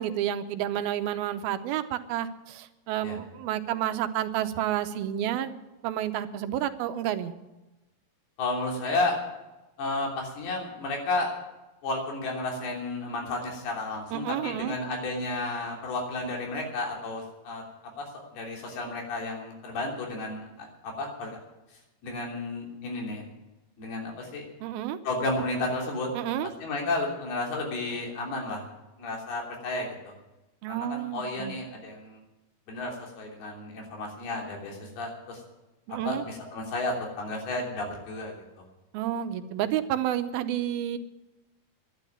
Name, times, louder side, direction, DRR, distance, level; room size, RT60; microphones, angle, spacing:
voice 1, 0.0-5.6 5.8-7.3 14.1-14.8 24.6-25.0 26.1-26.5 30.6-31.6 35.9-36.2 38.9-41.0, right 11 dB, 80° right, 11 dB, 2.6 m, -30 dB
voice 2, 8.4-9.2 9.8-11.3 11.8-17.6 18.0-21.4 22.0-23.2 23.8-24.5 25.1-26.1 26.4-28.7 29.0-30.1 30.7-32.2 32.7-35.4 36.0-38.3, left 2 dB, 85° left, 0 dB, 5.2 m, -32 dB
11.5 x 11.0 x 9.2 m, 1.0 s
omnidirectional pair, 4.4 m